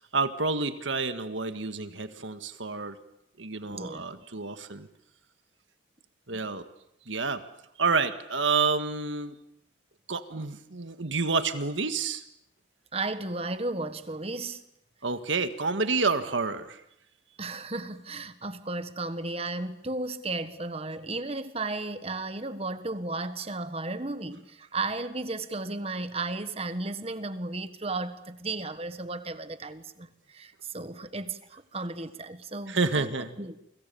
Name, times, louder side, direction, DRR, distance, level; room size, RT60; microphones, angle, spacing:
voice 1, 0.1-3.0 3.4-4.9 6.3-6.6 7.1-7.4 7.8-9.4 10.1-12.2 15.0-16.8 32.7-33.3, right 4 dB, 85° right, 1.8 m, -29 dB
voice 2, 3.6-4.2 6.3-6.4 12.9-14.6 17.4-33.6, right 2 dB, 30° right, 1.5 m, -34 dB
29.0 x 25.0 x 7.0 m
head